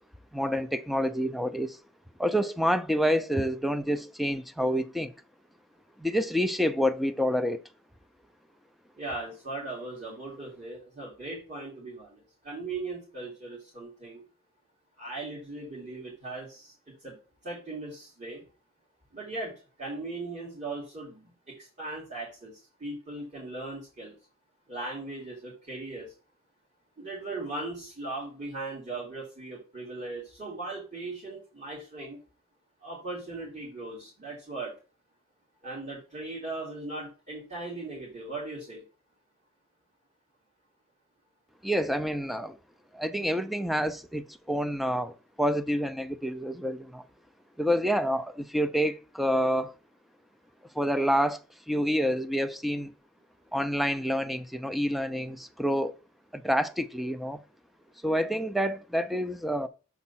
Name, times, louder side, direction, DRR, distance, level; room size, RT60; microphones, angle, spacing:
voice 1, 0.3-1.8 2.2-5.1 6.0-7.6 41.6-42.6 42.9-45.1 45.4-47.0 47.6-49.7 50.7-51.4 51.7-52.9 53.5-55.9 56.3-57.4 58.0-59.7, equal, ahead, 0.4 m, -28 dB
voice 2, 9.0-14.2 15.0-16.7 17.0-17.2 17.4-18.4 19.1-19.5 19.8-22.5 22.8-24.1 24.7-26.1 27.0-32.2 32.8-34.7 35.6-38.8, right 2 dB, 35° right, 2.8 m, -38 dB
7.2 x 4.7 x 4.2 m
head